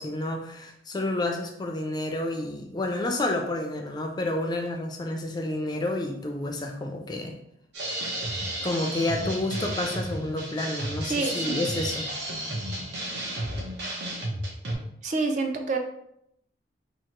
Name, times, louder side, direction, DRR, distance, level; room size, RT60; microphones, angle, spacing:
voice 1, 0.0-7.3 8.6-12.1, left 2 dB, 20° left, 3 dB, 0.4 m, -30 dB
sound 1, 7.7-14.7, right 1 dB, 70° right, 0.9 m, -32 dB
voice 2, 11.1-11.6 15.0-15.8, right 3 dB, 40° right, 4 dB, 0.4 m, -27 dB
2.9 x 2.8 x 4.3 m, 0.76 s
head